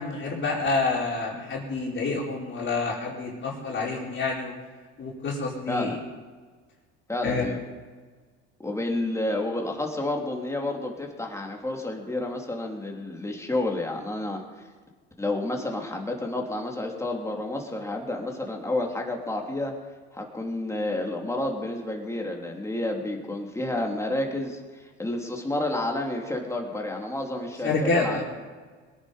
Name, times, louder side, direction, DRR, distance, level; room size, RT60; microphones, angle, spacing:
voice 1, 0.0-4.5 5.0-6.0 7.2-7.4 27.6-28.2, left 3 dB, 35° left, -3 dB, 4.5 m, -28 dB
voice 2, 5.7-6.0 7.1-7.6 8.6-14.7 15.2-19.7 20.1-28.2, left 1 dB, 10° left, 1 dB, 3.2 m, -30 dB
22.0 x 9.8 x 5.2 m, 1.4 s
supercardioid pair, 85°, 33 cm